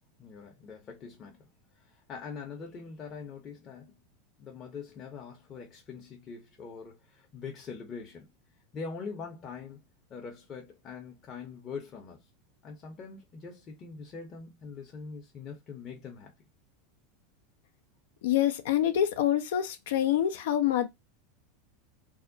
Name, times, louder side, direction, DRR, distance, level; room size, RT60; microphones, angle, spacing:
voice 1, 0.2-1.5 1.8-3.9 4.4-8.3 8.7-9.8 10.1-12.2 12.6-16.3, left 5 dB, 35° left, 0.7 m, -43 dB
voice 2, 18.2-20.9, left 11 dB, 70° left, 0.4 m, -26 dB
2.7 x 2.0 x 2.5 m
hypercardioid pair, 90°, 0 cm